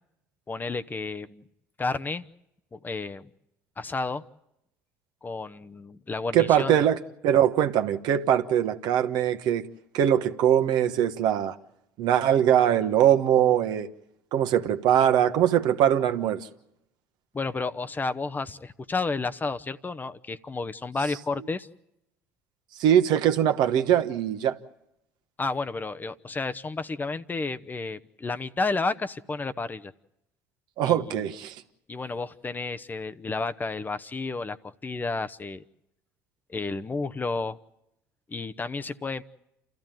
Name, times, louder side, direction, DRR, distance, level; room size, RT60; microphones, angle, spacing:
voice 1, 0.5-1.4 1.8-2.2 2.7-3.3 3.8-4.2 5.2-6.8 17.3-21.7 25.4-29.9 30.8-31.2 31.9-35.6 36.5-37.6 38.3-39.2, left 3 dB, 20° left, 0.9 m, -31 dB
voice 2, 6.3-9.7 9.9-11.6 12.0-13.9 14.3-16.5 22.8-24.6 30.8-31.6, right 10 dB, 60° right, 1.2 m, -22 dB
28.5 x 14.5 x 9.1 m
hypercardioid pair, 70°, 8 cm